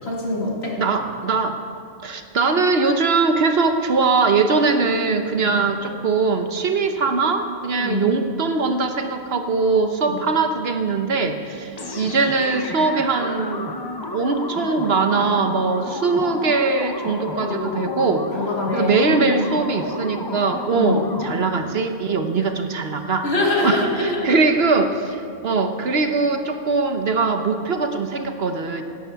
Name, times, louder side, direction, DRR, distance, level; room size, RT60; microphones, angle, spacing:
voice 1, 0.0-0.8 5.4-5.6 7.8-8.1 10.0-10.2 17.4-19.4 20.7-21.1 22.3-22.5 23.2-24.3, left 2 dB, 65° left, -3 dB, 2.8 m, -25 dB
voice 2, 0.8-1.6 2.0-13.7 14.1-18.3 18.7-23.3 23.6-28.8, right 4 dB, 60° right, 6 dB, 1.2 m, -21 dB
sound 1, 11.8-21.6, left 3 dB, 25° left, 0.7 m, -31 dB
17.0 x 12.0 x 4.7 m, 2.4 s
omnidirectional pair, 1.2 m